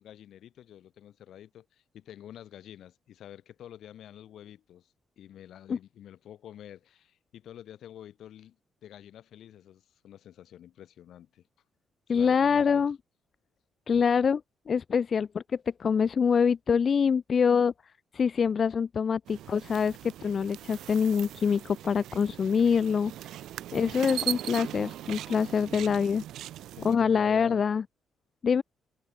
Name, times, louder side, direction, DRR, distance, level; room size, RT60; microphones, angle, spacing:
voice 1, 0.0-8.6 8.8-11.5 12.1-12.8 25.4-26.2 26.5-27.7, left 11 dB, 75° left, 5.2 m, -48 dB
voice 2, 12.1-13.0 13.9-14.4 14.7-17.7 18.1-23.3 23.7-26.2 26.8-27.8 28.4-28.6, left 6 dB, 50° left, 1.1 m, -25 dB
sound 1, 19.3-27.0, right 13 dB, 80° right, 4.6 m, -39 dB
cardioid pair, 80°, 0 cm